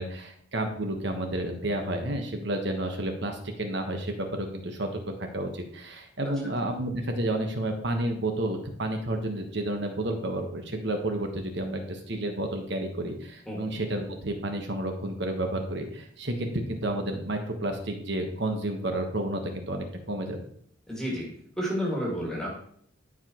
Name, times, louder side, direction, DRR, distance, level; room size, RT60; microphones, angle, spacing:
voice 1, 0.0-4.9 5.2-20.4, right 1 dB, 55° right, 4 dB, 1.3 m, -31 dB
voice 2, 20.9-21.3 21.6-22.5, equal, 5° left, -4 dB, 2.1 m, -30 dB
13.0 x 5.1 x 3.1 m, 0.65 s
head